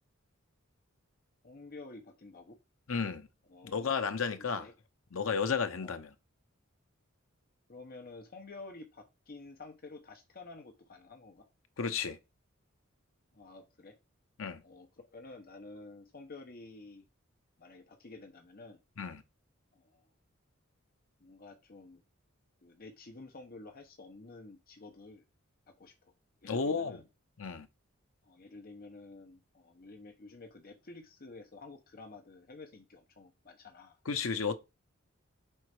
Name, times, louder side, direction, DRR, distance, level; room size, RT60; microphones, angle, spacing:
voice 1, 1.4-2.6 3.5-4.0 4.4-4.7 5.8-6.0 7.7-11.4 13.3-13.9 14.6-17.1 17.6-18.8 19.7-20.1 21.2-22.0 22.6-25.2 25.8-26.1 26.4-27.0 28.2-34.0, left 3 dB, 45° left, 0.8 m, -50 dB
voice 2, 2.9-3.3 3.6-4.7 5.1-6.1 11.8-12.2 14.4-14.6 19.0-19.2 26.4-27.0 27.4-27.7 34.1-34.6, left 5 dB, 75° left, 0.8 m, -33 dB
5.4 x 3.9 x 4.7 m
head